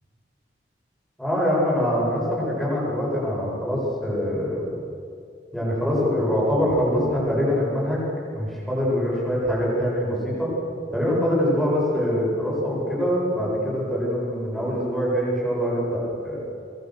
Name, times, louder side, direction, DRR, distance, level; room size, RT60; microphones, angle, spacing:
voice 1, 1.2-4.7 5.5-10.5 10.9-16.4, equal, ahead, -6 dB, 7.9 m, -24 dB
24.5 x 21.0 x 6.8 m, 2.5 s
head